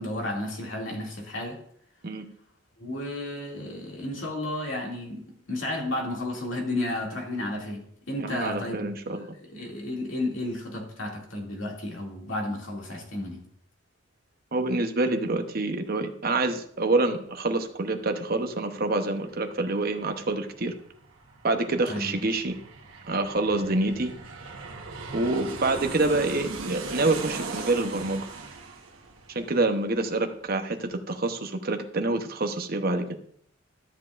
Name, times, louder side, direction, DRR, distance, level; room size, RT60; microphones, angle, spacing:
voice 1, 0.0-1.6 2.8-5.2 5.5-8.9 9.2-13.4 21.9-22.1, left 1 dB, 75° left, -1 dB, 2.4 m, -32 dB
voice 2, 8.2-9.3 14.5-20.7 21.4-22.6 23.0-24.1 25.1-28.2 29.3-33.0, right 2 dB, 45° right, 6 dB, 0.9 m, -27 dB
Aircraft, 18.7-18.8 19.1-30.4 30.7-30.8, right 3 dB, 90° right, 1.2 m, -39 dB
13.0 x 7.6 x 2.5 m, 0.65 s
head